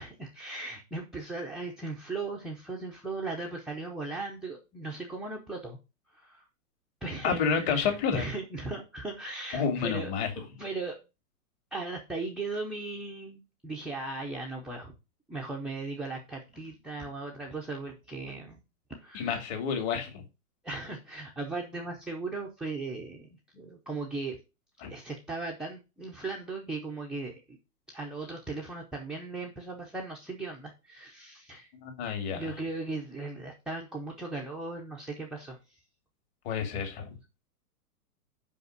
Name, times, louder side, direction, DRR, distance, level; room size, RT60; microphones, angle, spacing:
voice 1, 0.0-5.8 6.1-6.4 7.0-11.0 11.7-14.9 15.3-18.6 18.9-19.4 20.6-23.3 23.5-24.4 24.9-27.6 27.9-31.7 32.3-35.6, right 3 dB, ahead, 0.5 m, -37 dB
voice 2, 7.2-8.3 9.5-10.3 19.1-20.2 24.8-24.9 31.8-32.5 36.4-37.1, left 6 dB, 40° left, 2.5 m, -29 dB
5.4 x 5.2 x 6.5 m
hypercardioid pair, 135°, 46 cm